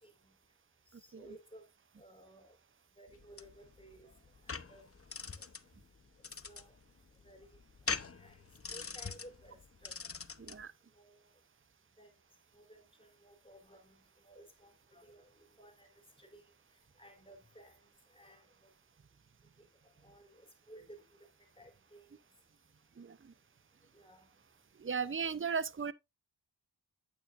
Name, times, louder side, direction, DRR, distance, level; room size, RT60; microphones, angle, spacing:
voice 1, 0.0-0.4 0.9-1.7 2.0-2.6 3.0-4.1 4.4-5.4 6.4-6.8 7.2-7.6 7.9-8.4 8.7-10.0 10.9-11.3 12.0-12.1 12.5-15.9 16.2-16.4 17.0-17.8 18.1-18.7 19.8-21.0 21.6-22.2 23.9-24.3, right 1 dB, 10° left, 3.5 m, -57 dB
sound 1, 3.1-10.6, left 5 dB, 30° left, 0.7 m, -43 dB
voice 2, 10.4-10.7 23.0-23.3 24.8-25.9, right 6 dB, 30° right, 0.6 m, -37 dB
9.1 x 8.8 x 2.5 m
wide cardioid pair, 50°, 43 cm